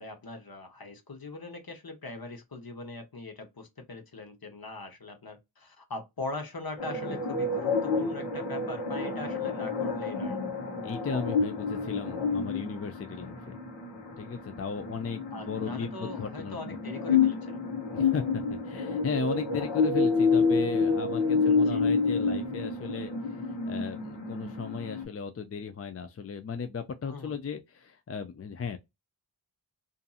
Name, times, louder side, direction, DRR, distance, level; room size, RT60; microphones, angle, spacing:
voice 1, 0.0-10.4 15.3-17.6 21.4-21.8 27.1-27.4, left 3 dB, 55° left, 0.9 m, -41 dB
sound 1, 6.8-25.0, left 4 dB, 85° left, 1.0 m, -29 dB
voice 2, 10.8-13.6 14.2-16.6 17.9-28.8, left 5 dB, 35° left, 0.4 m, -36 dB
2.6 x 2.6 x 2.3 m
wide cardioid pair, 50°, 43 cm